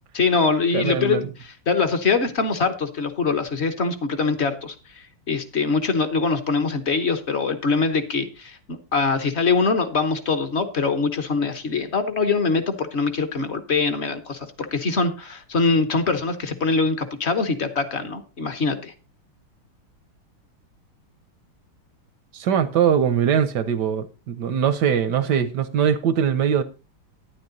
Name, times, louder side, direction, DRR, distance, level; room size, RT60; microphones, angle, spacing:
voice 1, 0.1-18.9, left 4 dB, 45° left, 0.9 m, -23 dB
voice 2, 0.7-1.3 22.3-26.6, right 8 dB, 65° right, 1.1 m, -21 dB
10.5 x 10.0 x 3.9 m
omnidirectional pair, 2.4 m